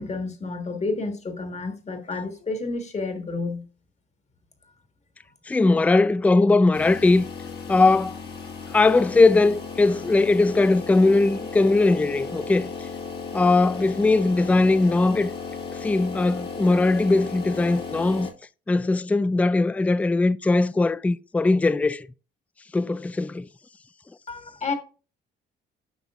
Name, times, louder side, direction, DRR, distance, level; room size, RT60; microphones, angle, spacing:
voice 1, 0.0-3.6 24.3-24.7, left 3 dB, 35° left, 1.7 m, -30 dB
voice 2, 5.5-7.3 7.7-8.2 8.7-12.7 13.3-15.3 15.8-18.3 18.7-22.1 22.7-23.5, left 3 dB, 5° left, 0.3 m, -20 dB
sound 1, 6.7-18.3, left 5 dB, 55° left, 1.7 m, -35 dB
9.2 x 5.6 x 2.5 m
cardioid pair, 90°, 20 cm